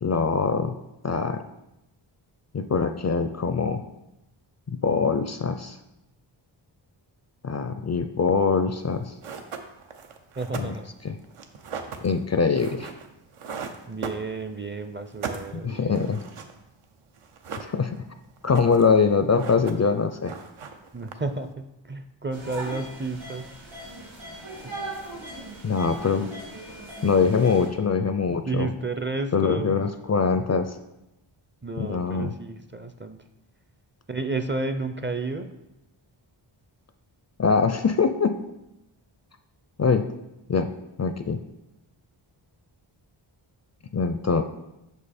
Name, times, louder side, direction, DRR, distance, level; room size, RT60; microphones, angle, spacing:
voice 1, 0.0-0.7 1.0-1.4 2.5-3.8 4.7-5.8 7.4-9.1 10.6-10.7 11.0-11.1 12.0-12.9 15.6-16.2 17.6-18.0 18.4-20.3 25.6-26.3 27.0-28.7 29.3-30.8 31.8-32.3 37.4-38.4 39.8-40.1 40.5-40.7 41.0-41.4 43.9-44.4, left 5 dB, 35° left, 8 dB, 0.4 m, -23 dB
sound 1, 8.8-8.9 9.2-14.7 15.0-16.8 17.2-18.1 18.4-19.0 19.2-20.0 20.2-21.5, right 5 dB, 85° right, 0.8 m, -38 dB
voice 2, 10.4-10.9 13.9-16.0 20.9-23.5 28.3-29.8 31.6-33.2 34.1-35.5, right 3 dB, 25° right, 8 dB, 0.5 m, -32 dB
sound 2, 22.3-27.7, right 1 dB, 65° right, 2.3 m, -39 dB
6.1 x 5.5 x 4.2 m, 0.92 s
cardioid pair, 55°, 50 cm